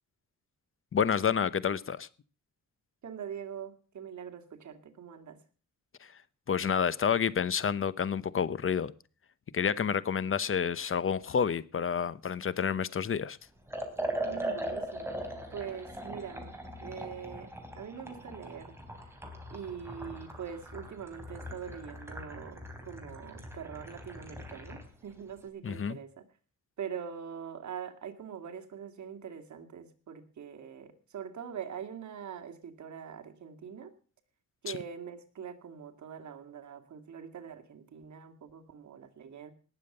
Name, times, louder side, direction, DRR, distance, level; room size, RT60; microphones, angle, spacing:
voice 1, 0.9-2.1 6.5-8.9 9.5-13.4 25.6-26.0, left 7 dB, 45° left, 18 dB, 0.9 m, -29 dB
voice 2, 3.0-5.4 14.2-15.2 15.5-16.5 16.8-19.2 19.5-26.3 26.8-33.9 34.6-39.5, right 7 dB, 70° right, 5 dB, 2.3 m, -43 dB
Liquid, 13.7-24.9, right 1 dB, 10° right, 3.7 m, -40 dB
19.0 x 7.4 x 6.6 m, 0.39 s
cardioid pair, 95°, 30 cm